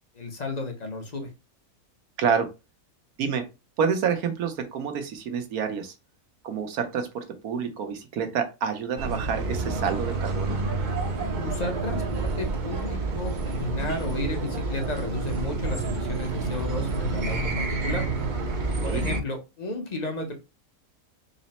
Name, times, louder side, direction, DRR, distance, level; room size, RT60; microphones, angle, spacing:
voice 1, 0.1-1.3 11.4-18.1 18.8-20.4, left 2 dB, 40° left, 4 dB, 0.6 m, -33 dB
voice 2, 3.8-5.9 6.4-10.6 18.8-19.0, right 6 dB, 85° right, 6 dB, 1.3 m, -28 dB
sound 1, 9.0-19.2, right 3 dB, 50° right, 0.5 m, -28 dB
4.0 x 2.1 x 4.1 m, 0.26 s
omnidirectional pair, 1.5 m